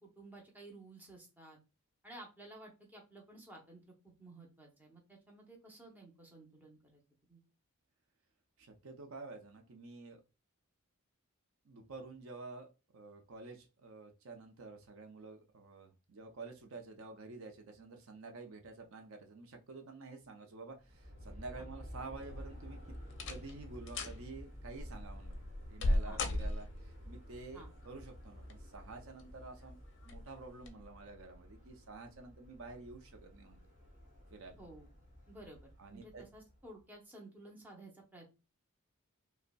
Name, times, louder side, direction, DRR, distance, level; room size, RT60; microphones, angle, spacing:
voice 1, 0.0-1.6 2.0-7.0 7.3-7.4 21.6-21.7 26.0-26.2 27.5-27.7 34.6-34.9 35.3-38.3, right 2 dB, 10° right, -1 dB, 0.7 m, -54 dB
voice 2, 8.6-10.2 11.6-22.8 23.3-29.8 30.0-33.6 34.3-34.6 35.8-36.2, right 3 dB, 65° right, 4 dB, 0.6 m, -50 dB
Aircraft, 20.8-36.8, equal, 35° right, 1.6 m, -52 dB
sound 1, 22.2-22.6 23.1-23.6 23.9-24.2 24.8-27.0 28.2-28.7 29.2-29.3 30.0-30.2 30.6-30.7, left 1 dB, 55° left, 0.5 m, -36 dB
5.1 x 2.1 x 2.2 m, 0.30 s
head